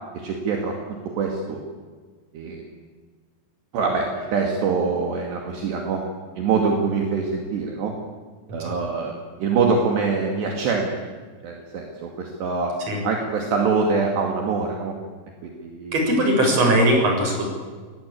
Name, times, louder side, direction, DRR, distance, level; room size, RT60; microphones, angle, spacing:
voice 1, 0.1-1.6 2.3-2.6 3.7-6.0 6.4-7.9 8.5-11.1 11.4-12.8 13.0-14.9 15.4-16.1, right 4 dB, 65° right, 1 dB, 4.5 m, -24 dB
voice 2, 15.9-17.5, right 1 dB, 35° right, 2 dB, 7.6 m, -20 dB
28.5 x 21.0 x 8.6 m, 1.5 s
omnidirectional pair, 5.4 m